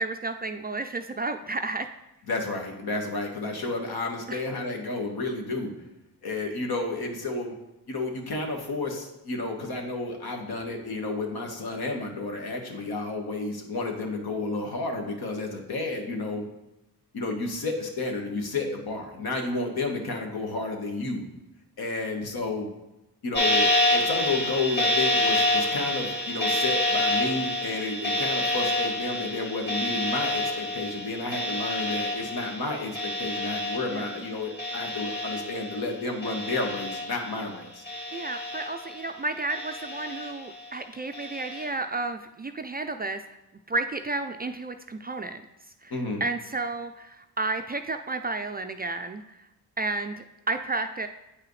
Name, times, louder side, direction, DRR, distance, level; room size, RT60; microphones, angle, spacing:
voice 1, 0.0-1.9 4.3-4.4 33.9-34.1 38.1-43.2 43.7-45.4 45.8-45.9 46.2-49.4 49.8-51.1, right 3 dB, 25° right, 7 dB, 0.4 m, -32 dB
voice 2, 2.3-5.7 6.2-7.5 7.9-16.4 17.1-21.2 21.8-22.7 23.2-37.8 45.9-46.2, left 3 dB, 65° left, 2 dB, 1.4 m, -31 dB
sound 1, 23.3-35.9 36.2-37.4 37.8-39.1 39.5-40.5 41.1-41.6, left 1 dB, 25° left, 2.4 m, -28 dB
8.6 x 4.8 x 3.1 m, 0.96 s
supercardioid pair, 55°, 39 cm